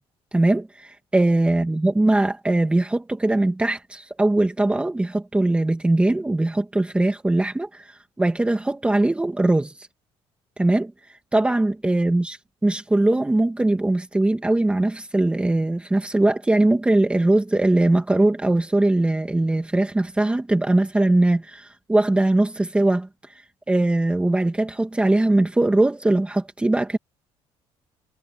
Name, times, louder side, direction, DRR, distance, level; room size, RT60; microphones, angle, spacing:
voice 1, 0.3-9.9 10.6-23.4 23.7-27.0, right 2 dB, 10° right, 2.1 m, -21 dB
cardioid pair, 120°, 11 cm